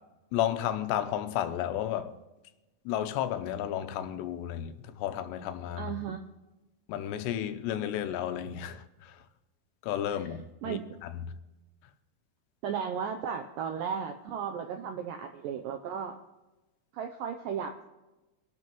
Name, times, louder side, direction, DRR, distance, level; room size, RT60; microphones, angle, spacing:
voice 1, 0.3-2.1 2.9-5.9 6.9-9.2 9.8-11.3, left 11 dB, 90° left, 2.9 m, -33 dB
voice 2, 5.8-6.2 10.6-10.8 12.6-16.1 16.9-17.9, right 7 dB, 85° right, 1.9 m, -35 dB
23.5 x 12.5 x 3.0 m
omnidirectional pair, 4.8 m